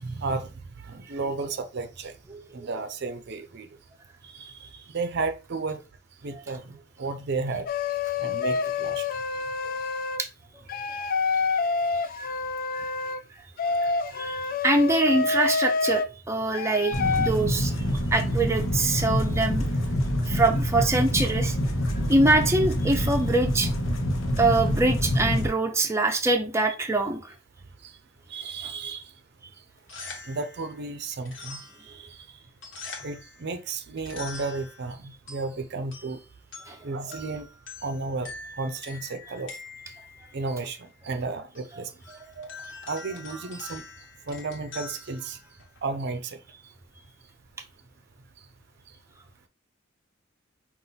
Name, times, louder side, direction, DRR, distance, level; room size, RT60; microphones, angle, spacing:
voice 1, 0.0-2.1 2.5-3.7 4.2-5.8 6.2-7.7 8.2-9.0 27.8-27.9 28.3-29.0 30.3-32.2 33.0-36.2 36.8-37.5 37.8-39.5 40.3-41.9 42.4-42.5 42.9-43.8 44.3-45.4 45.8-46.4, right 3 dB, 60° right, 0.5 m, -33 dB
voice 2, 2.3-2.7 9.6-9.8 10.2-10.3 12.2-12.3 12.7-12.8 13.8-17.7 18.1-19.6 20.3-21.6 22.1-23.7 24.4-27.3 36.7-36.8, right 2 dB, 15° right, 0.5 m, -24 dB
sound 1, 7.7-10.2 10.7-13.2 13.6-16.1 16.5-17.3, left 4 dB, 45° left, 0.3 m, -27 dB
sound 2, 16.9-25.5, equal, 90° left, 0.9 m, -26 dB
sound 3, 29.7-45.9, left 3 dB, 65° left, 1.3 m, -45 dB
5.3 x 2.5 x 3.9 m
head